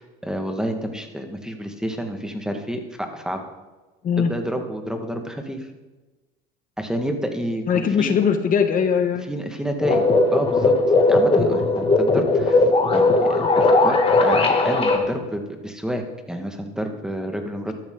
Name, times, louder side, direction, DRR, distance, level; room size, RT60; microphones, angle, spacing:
voice 1, 0.0-3.4 4.2-5.7 6.8-8.1 9.3-10.0 10.3-10.7 11.1-12.6 12.9-17.7, equal, 5° right, 5 dB, 1.9 m, -29 dB
voice 2, 7.7-9.3, left 7 dB, 45° left, 7 dB, 1.4 m, -20 dB
sound 1, 9.8-15.0, left 2 dB, 30° left, 2.4 m, -18 dB
13.5 x 12.5 x 4.0 m, 1.2 s
supercardioid pair, 95°, 19 cm